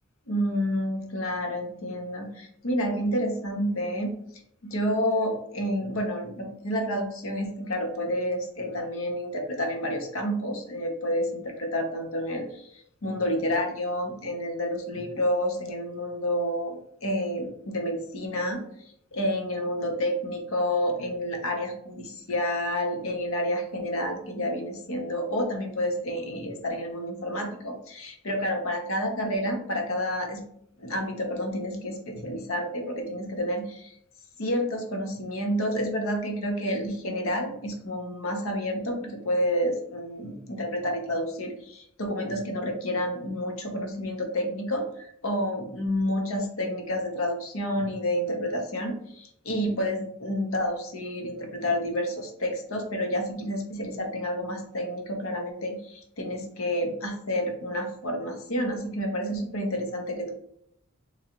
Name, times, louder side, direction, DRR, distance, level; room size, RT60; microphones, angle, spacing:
voice 1, 0.3-4.2 4.6-16.7 17.0-18.6 19.1-30.4 30.8-33.9 34.4-60.3, equal, 65° left, 3 dB, 0.8 m, -29 dB
3.7 x 3.2 x 2.9 m, 0.72 s
head